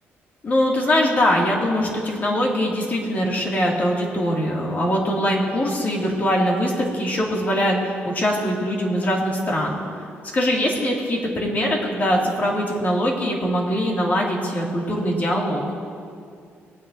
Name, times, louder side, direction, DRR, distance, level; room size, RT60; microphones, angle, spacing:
voice 1, 0.4-9.8 10.3-15.6, equal, 40° left, -3 dB, 2.5 m, -22 dB
21.0 x 9.5 x 2.7 m, 2.3 s
cardioid pair, 115°, 5 cm